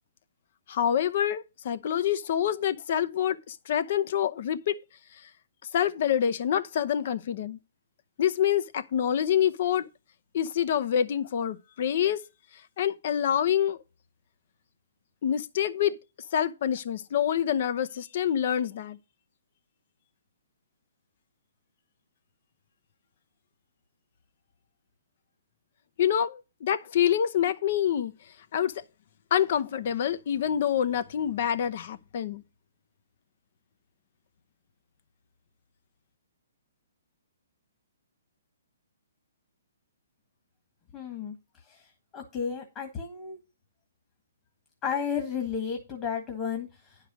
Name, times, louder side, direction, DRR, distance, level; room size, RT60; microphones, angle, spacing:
voice 1, 0.7-4.8 5.7-7.6 8.2-9.9 10.3-12.2 12.8-13.8 15.2-16.0 16.3-19.0 26.0-28.1 28.5-28.7 29.3-32.4, left 9 dB, 50° left, 0.7 m, -26 dB
voice 2, 40.9-41.3 41.7-41.8 42.1-43.4 44.8-47.0, left 7 dB, 25° left, 1.7 m, -33 dB
10.0 x 4.9 x 6.1 m
hypercardioid pair, 150°, 0 cm